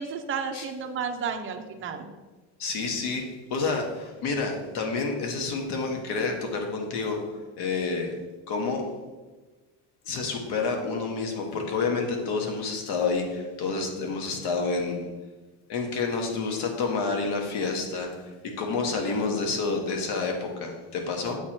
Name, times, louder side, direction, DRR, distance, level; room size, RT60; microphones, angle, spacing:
voice 1, 0.0-2.1, right 6 dB, 30° right, 5 dB, 0.6 m, -32 dB
voice 2, 2.6-7.2 7.6-8.2 8.5-8.8 10.0-15.1 15.7-21.4, left 4 dB, 65° left, 2 dB, 1.4 m, -29 dB
7.9 x 3.0 x 4.4 m, 1.2 s
cardioid pair, 120°, 43 cm